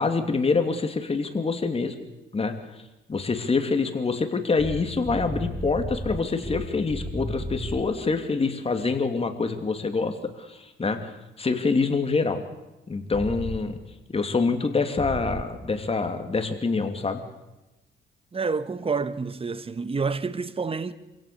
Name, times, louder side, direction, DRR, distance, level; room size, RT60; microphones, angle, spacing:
voice 1, 0.0-1.9 2.3-2.5 3.1-12.4 12.9-13.8 14.1-17.2, left 4 dB, 30° left, 2.8 m, -26 dB
sound 1, 4.6-7.8 13.1-13.6 15.0-15.4, equal, 5° right, 4.5 m, -33 dB
voice 2, 18.3-20.9, right 4 dB, 30° right, 1.4 m, -28 dB
26.5 x 17.0 x 7.0 m
cardioid pair, 90°, 20 cm